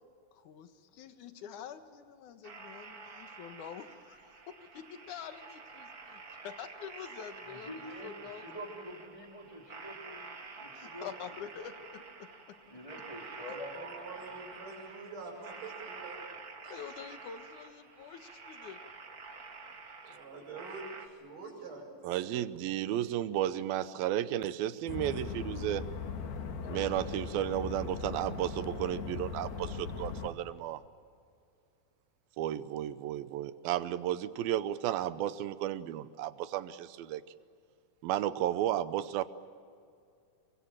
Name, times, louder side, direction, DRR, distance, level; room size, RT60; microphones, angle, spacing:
voice 1, 0.4-8.5 10.7-12.6 16.7-18.8, left 8 dB, 65° left, 8 dB, 2.7 m, -47 dB
sound 1, 2.4-21.1, right 4 dB, 40° right, 1.4 m, -49 dB
voice 2, 7.5-11.1 12.7-13.9 14.2-14.3, equal, 10° left, 0 dB, 3.4 m, -46 dB
voice 3, 13.7-16.2 16.6-16.8 20.0-22.3, right 3 dB, 65° right, -3 dB, 7.4 m, -46 dB
voice 4, 22.0-25.8 26.7-30.8 32.4-37.2 38.0-39.2, right 12 dB, 85° right, 14 dB, 2.7 m, -33 dB
sound 2, 24.9-30.3, left 6 dB, 90° left, 3.8 m, -39 dB
28.0 x 24.0 x 7.5 m, 2.4 s
omnidirectional pair, 4.2 m